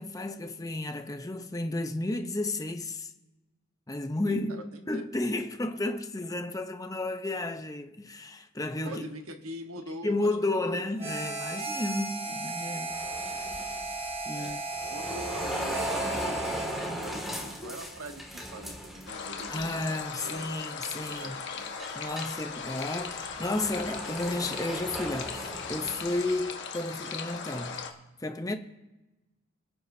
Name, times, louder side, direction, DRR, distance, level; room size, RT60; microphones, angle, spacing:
voice 1, 0.0-3.1 3.9-9.0 10.0-13.0 13.4-13.6 14.3-14.6 19.5-21.3 21.9-27.8 28.2-28.6, left 2 dB, 15° left, 0.7 m, -32 dB
voice 2, 4.2-5.0 8.8-10.3 10.6-10.9 12.3-12.9 14.3-20.7 21.0-21.7, right 1 dB, 80° right, 1.3 m, -44 dB
Harmonica, 11.0-17.0, right 3 dB, 30° right, 1.7 m, -35 dB
sound 1, 12.9-19.7 20.0-20.4 20.9-21.4 21.8-26.4, equal, ahead, 2.1 m, -37 dB
sound 2, 19.1-27.9, left 5 dB, 55° left, 1.3 m, -38 dB
27.0 x 9.2 x 2.7 m
head